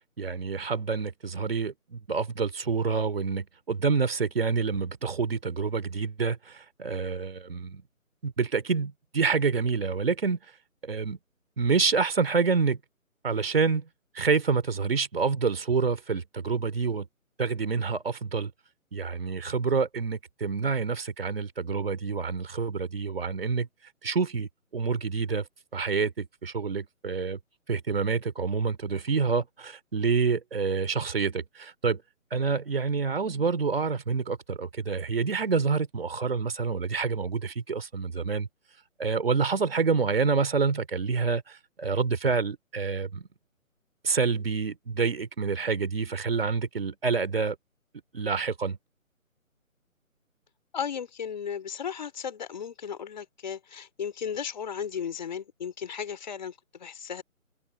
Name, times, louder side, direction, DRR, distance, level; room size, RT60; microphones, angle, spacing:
voice 1, 0.2-7.8 8.2-10.4 10.8-11.2 11.6-12.8 13.2-13.9 14.1-17.1 17.4-18.5 18.9-23.7 24.0-25.5 25.7-27.4 27.7-32.0 32.3-38.5 39.0-43.3 44.0-47.6 48.1-48.8, right 5 dB, 45° right, 3.7 m, -27 dB
voice 2, 50.7-57.2, left 7 dB, 30° left, 3.8 m, -35 dB
figure-of-eight pair, 150°, 42 cm